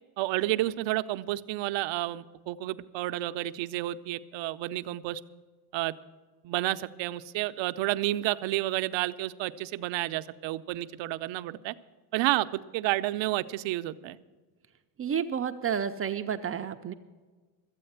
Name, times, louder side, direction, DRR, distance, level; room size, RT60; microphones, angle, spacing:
voice 1, 0.2-5.2 5.7-5.9 6.4-11.7 12.1-14.2, right 16 dB, 65° right, 12 dB, 0.7 m, -30 dB
voice 2, 15.0-16.9, right 8 dB, 30° right, 7 dB, 0.5 m, -30 dB
13.5 x 8.4 x 8.0 m, 1.4 s
cardioid pair, 130°, 49 cm